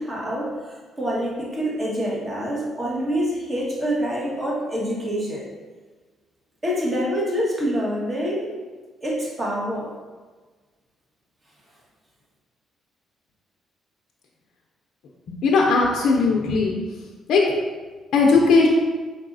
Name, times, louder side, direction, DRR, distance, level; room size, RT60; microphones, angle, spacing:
voice 1, 0.0-5.5 6.6-8.6 9.0-9.9, equal, 30° right, -4 dB, 1.4 m, -26 dB
voice 2, 15.4-16.7 17.3-17.4 18.1-18.7, left 4 dB, 75° left, -1 dB, 0.5 m, -17 dB
4.7 x 3.9 x 2.6 m, 1.3 s
cardioid pair, 90°, 0 cm